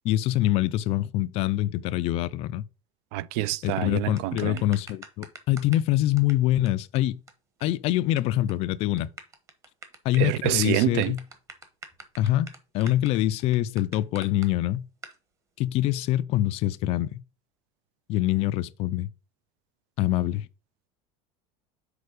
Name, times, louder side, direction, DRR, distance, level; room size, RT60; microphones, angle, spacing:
voice 1, 0.0-2.6 3.6-7.2 7.6-9.1 10.0-11.2 12.2-12.5 12.7-14.8 15.6-17.2 18.1-19.1 20.0-20.5, left 14 dB, 40° left, 0.4 m, -25 dB
voice 2, 3.1-4.6 10.2-11.1, right 16 dB, 60° right, 0.4 m, -27 dB
sound 1, 4.2-5.9 6.2-6.3 6.7-6.8 7.0-7.1 7.3-7.4 7.6-8.2 8.5-8.6 9.0-14.5 15.0-15.2, right 3 dB, 20° right, 1.1 m, -44 dB
6.6 x 4.5 x 4.7 m
cardioid pair, 165°, 16 cm